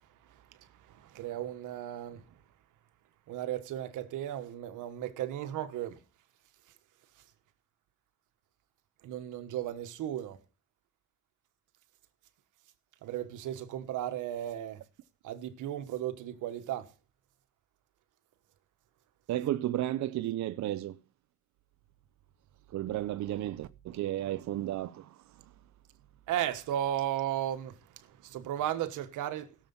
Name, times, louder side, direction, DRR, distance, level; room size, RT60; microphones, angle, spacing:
voice 1, 0.9-2.2 3.3-6.0 9.0-10.4 13.0-14.8 15.2-16.9 26.3-29.5, right 11 dB, 85° right, 1.4 m, -35 dB
voice 2, 19.3-21.0 22.7-25.1, right 13 dB, 65° right, 0.6 m, -33 dB
17.0 x 7.1 x 5.5 m
cardioid pair, 90°, 30 cm